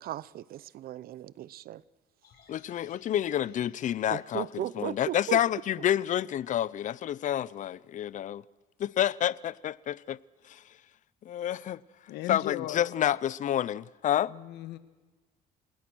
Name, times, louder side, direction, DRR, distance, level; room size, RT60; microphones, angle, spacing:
voice 1, 0.0-1.8 4.1-5.4, right 13 dB, 60° right, 0.7 m, -37 dB
sound 1, 2.2-6.4 6.7-6.8, left 7 dB, 65° left, 4.4 m, -64 dB
voice 2, 2.5-4.5 4.8-8.4 8.8-10.2 10.4-10.6 11.2-11.8 12.3-14.3, left 11 dB, 50° left, 0.6 m, -29 dB
voice 3, 12.1-12.9 14.3-14.8, left 13 dB, 85° left, 1.5 m, -37 dB
27.5 x 19.5 x 6.3 m
cardioid pair, 110°, 17 cm